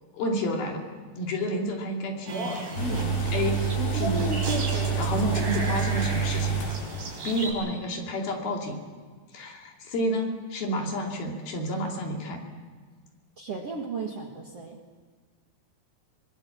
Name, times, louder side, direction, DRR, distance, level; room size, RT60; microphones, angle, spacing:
voice 1, 0.1-0.8 1.2-2.6 3.3-3.6 3.9-4.3 4.9-6.7 7.2-8.8 9.3-12.4, left 1 dB, 65° left, 1 dB, 4.5 m, -30 dB
sound 1, 2.3-7.5, right 1 dB, 70° right, 6.3 m, -33 dB
sound 2, 2.8-7.2 7.5-7.6, right 6 dB, 85° left, 6.0 m, -28 dB
voice 2, 13.4-14.8, right 5 dB, 50° right, 1 dB, 1.9 m, -35 dB
24.0 x 21.0 x 7.4 m, 1.5 s
omnidirectional pair, 4.9 m